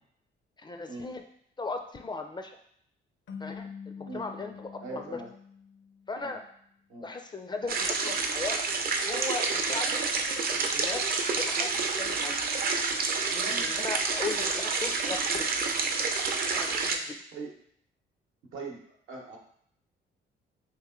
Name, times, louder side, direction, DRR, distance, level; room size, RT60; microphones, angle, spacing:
voice 1, 0.6-1.2 1.6-2.5 3.4-5.2 6.1-6.4 7.0-8.6 9.1-10.0 10.5-12.5 13.3-15.5 16.5-17.2, left 3 dB, 20° left, 5 dB, 0.4 m, -37 dB
sound 1, 3.3-6.4, left 6 dB, 65° left, 0.6 m, -45 dB
voice 2, 4.1-4.5 4.8-5.3 6.2-6.4 6.9-7.1 13.5-13.7 17.3-17.6 18.5-18.8 19.1-19.4, right 3 dB, 85° right, 0 dB, 0.8 m, -41 dB
sound 2, 7.7-17.0, right 4 dB, 50° right, 0.5 m, -29 dB
3.0 x 2.8 x 3.7 m, 0.67 s
cardioid pair, 90°, 20 cm